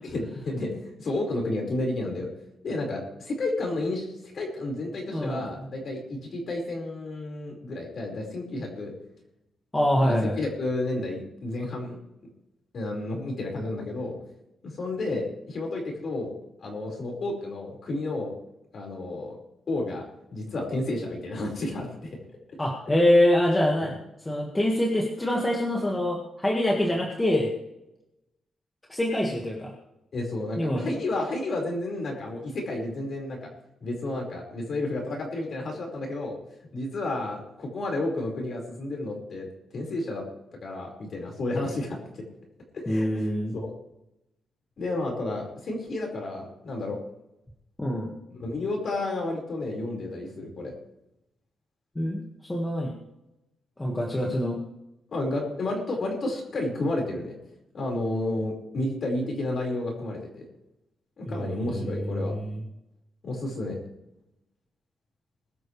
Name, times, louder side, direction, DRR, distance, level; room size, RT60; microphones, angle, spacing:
voice 1, 0.1-2.3 2.6-4.1 4.3-8.9 10.0-12.0 12.7-14.2 14.6-16.3 16.6-18.3 18.7-19.4 19.7-20.0 20.3-22.2 23.8-23.9 30.1-33.5 33.8-36.4 36.7-39.5 39.7-40.2 40.6-42.0 42.7-43.1 43.5-43.7 44.8-47.0 48.3-50.7 55.1-57.3 57.7-60.4 61.2-62.3 63.2-63.8, left 2 dB, 45° left, 0 dB, 4.9 m, -31 dB
voice 2, 5.1-5.7 9.7-10.4 22.6-23.9 24.2-27.5 28.9-29.7 30.6-30.9 42.9-43.5 47.8-48.1 51.9-52.9 53.8-54.6 61.3-62.5, left 1 dB, 10° left, -2 dB, 1.8 m, -25 dB
22.0 x 12.0 x 3.3 m, 0.88 s
wide cardioid pair, 175°, 0 cm